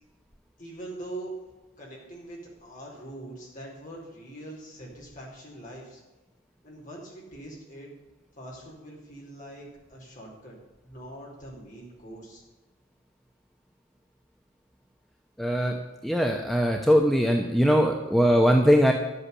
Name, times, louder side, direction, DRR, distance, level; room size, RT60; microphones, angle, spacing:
voice 1, 0.6-1.3 1.8-6.0 6.6-7.9 8.4-10.6 10.8-12.4, right 1 dB, 40° left, -3 dB, 4.6 m, -43 dB
voice 2, 15.4-15.8 16.0-18.9, equal, ahead, 2 dB, 0.9 m, -21 dB
12.0 x 8.4 x 7.3 m, 1.1 s
head